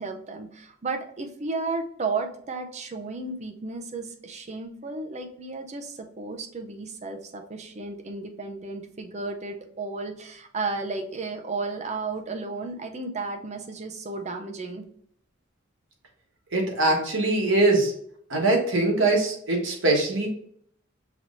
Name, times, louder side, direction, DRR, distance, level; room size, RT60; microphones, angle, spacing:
voice 1, 0.0-14.8, right 3 dB, 35° right, 5 dB, 0.6 m, -33 dB
voice 2, 16.5-17.9 18.3-20.3, right 2 dB, 80° right, 0 dB, 1.3 m, -22 dB
5.9 x 3.1 x 2.6 m, 0.65 s
head